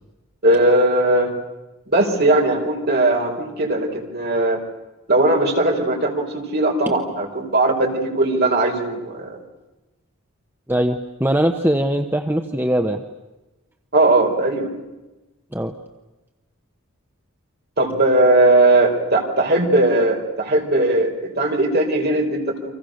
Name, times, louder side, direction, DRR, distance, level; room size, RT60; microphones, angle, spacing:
voice 1, 0.4-1.3 1.9-4.6 5.1-6.2 6.5-9.4 13.9-14.7 17.8-22.7, right 2 dB, 45° right, 1 dB, 4.8 m, -18 dB
voice 2, 10.7-13.0 15.5-15.7, right 1 dB, 10° right, 5 dB, 1.1 m, -21 dB
30.0 x 25.0 x 6.6 m, 1.1 s
head